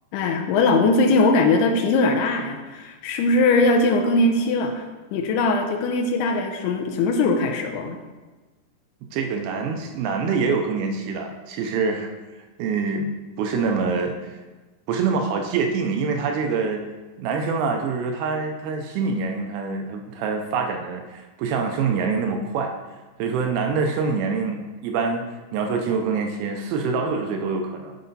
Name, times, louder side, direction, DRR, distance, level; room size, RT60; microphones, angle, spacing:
voice 1, 0.1-4.9 5.1-8.0, left 3 dB, 80° left, 3 dB, 2.7 m, -20 dB
voice 2, 9.1-12.1 12.6-13.1 13.4-14.4 14.9-16.8 17.2-22.7 23.2-25.2 25.5-28.0, right 5 dB, 80° right, 4 dB, 2.3 m, -25 dB
10.5 x 4.2 x 4.0 m, 1.2 s
omnidirectional pair, 4.7 m